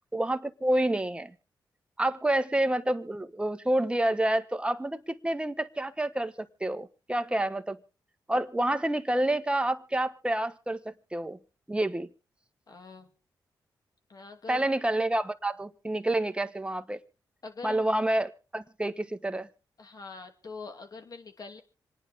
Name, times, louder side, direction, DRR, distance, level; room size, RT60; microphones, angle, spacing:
voice 1, 0.1-1.3 2.0-7.8 8.3-11.4 11.7-12.1 14.5-17.0 17.6-19.5, right 1 dB, 15° right, 1.2 m, -28 dB
voice 2, 12.7-13.1 14.1-14.7 17.4-17.9 19.8-21.6, left 4 dB, 55° left, 2.6 m, -44 dB
26.5 x 10.0 x 3.6 m
cardioid pair, 70°, 8 cm